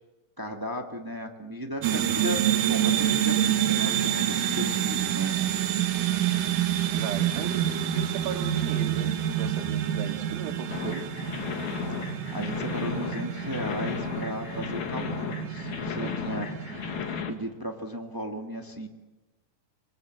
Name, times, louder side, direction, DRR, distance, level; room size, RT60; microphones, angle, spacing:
voice 1, 0.4-2.4 2.7-5.4 11.9-16.5 17.3-18.9, equal, 20° right, 3 dB, 0.5 m, -35 dB
sound 1, 1.8-17.2, right 10 dB, 70° right, 3.1 m, -28 dB
voice 2, 6.9-11.0 16.0-16.4, right 7 dB, 85° right, 4 dB, 3.8 m, -37 dB
sound 2, 10.7-17.3, left 8 dB, 60° left, 2.8 m, -34 dB
27.0 x 25.0 x 7.8 m, 1.2 s
omnidirectional pair, 4.1 m